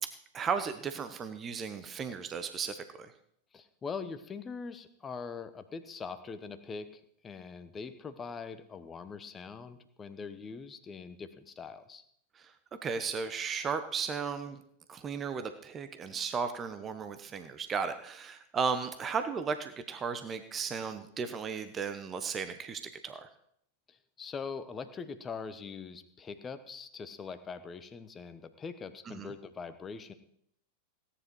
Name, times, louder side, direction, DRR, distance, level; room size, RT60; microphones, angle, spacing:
voice 1, 0.3-3.1 12.3-12.5 12.8-14.6 14.9-23.3 29.1-29.3, right 6 dB, 25° right, 10 dB, 1.0 m, -35 dB
voice 2, 3.5-12.0 23.9-30.1, left 5 dB, 20° left, 10 dB, 1.2 m, -42 dB
17.0 x 10.0 x 4.8 m, 0.71 s
figure-of-eight pair, 90°, 0 cm